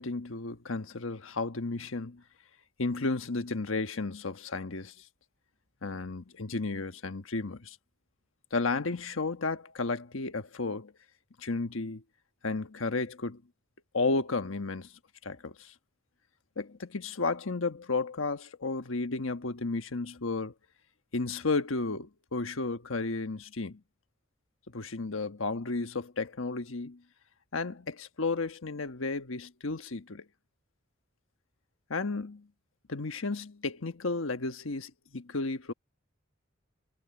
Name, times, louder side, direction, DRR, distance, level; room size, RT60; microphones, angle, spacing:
voice 1, 0.0-2.2 2.8-4.9 5.8-7.8 8.5-10.9 11.4-12.0 12.4-13.4 13.9-14.9 15.2-15.7 16.6-20.5 21.1-23.8 24.7-27.0 27.5-30.2 31.9-32.5 32.9-35.7, left 3 dB, 85° left, 1.3 m, -33 dB
head